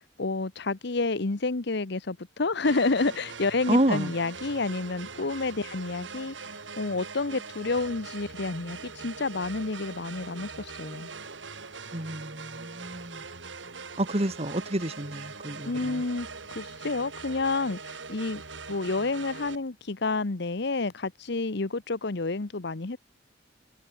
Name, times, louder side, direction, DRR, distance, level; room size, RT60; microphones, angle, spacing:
voice 1, 0.0-6.3 6.8-11.1 15.6-18.4 18.7-23.0, left 3 dB, 65° left, 1.1 m, -29 dB
sound 1, 2.6-19.6, right 4 dB, 80° right, 3.1 m, -42 dB
voice 2, 3.7-4.1 11.9-13.2 14.0-16.0, right 1 dB, 35° right, 3.3 m, -29 dB
head